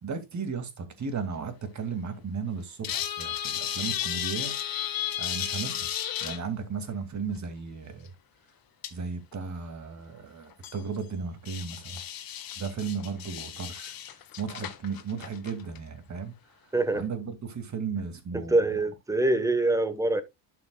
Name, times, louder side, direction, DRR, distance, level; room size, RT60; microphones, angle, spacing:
voice 1, 0.0-4.5 5.2-5.9 6.2-8.1 8.9-12.0 12.6-13.9 14.4-16.3 16.9-18.6, right 5 dB, 40° right, 2.3 m, -35 dB
sound 1, 2.8-6.4 8.1-8.2 8.8-8.9 9.3-9.4 10.5-10.8 11.5-15.8 16.2-16.3, left 10 dB, 50° left, 1.5 m, -34 dB
voice 2, 16.7-17.1 18.3-20.2, right 2 dB, 5° right, 1.1 m, -25 dB
12.0 x 5.9 x 2.3 m
cardioid pair, 100°, 45 cm